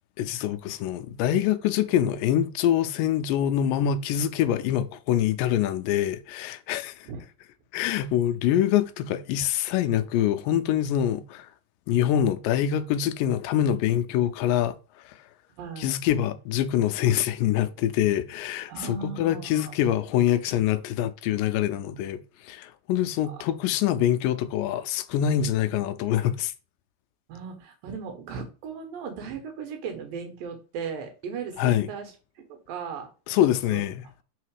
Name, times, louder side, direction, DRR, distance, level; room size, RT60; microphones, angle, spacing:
voice 1, 0.2-7.1 7.7-11.5 11.9-14.8 15.8-26.5 31.6-31.9 33.3-34.0, left 11 dB, 85° left, 2.2 m, -25 dB
voice 2, 15.5-15.9 18.7-19.7 23.2-23.4 27.3-32.1 32.4-33.1 33.7-33.8, right 6 dB, 85° right, 2.9 m, -37 dB
5.6 x 3.7 x 4.8 m
omnidirectional pair, 3.9 m